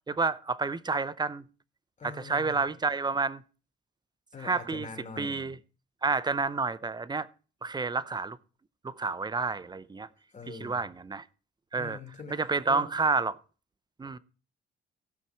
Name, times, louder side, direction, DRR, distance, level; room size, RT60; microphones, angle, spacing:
voice 1, 0.1-1.4 2.0-3.4 4.4-4.9 5.2-5.6 6.0-7.3 7.6-8.4 8.8-10.1 10.5-11.2 11.7-12.0 12.3-13.4 14.0-14.2, right 4 dB, 20° right, 0.6 m, -29 dB
voice 2, 2.0-2.7 4.3-5.5 10.3-10.8 11.8-12.4 12.7-12.8, left 4 dB, 40° left, 3.0 m, -43 dB
16.0 x 5.8 x 4.6 m
cardioid pair, 90°, 20 cm